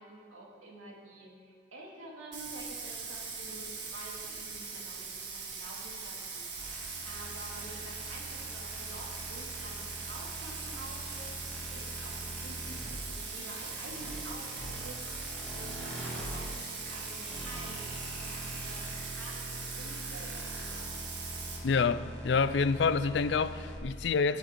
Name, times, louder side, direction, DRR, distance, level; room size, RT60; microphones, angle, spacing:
voice 1, 0.0-11.3 11.6-15.0 15.5-21.0, right 2 dB, 90° right, 2.6 m, -49 dB
Bathtub (filling or washing), 2.3-21.6, right 5 dB, 60° right, 1.8 m, -41 dB
sound 1, 6.6-23.8, equal, 5° left, 1.8 m, -43 dB
voice 2, 21.6-24.4, left 5 dB, 60° left, 0.4 m, -27 dB
18.5 x 7.2 x 4.6 m
head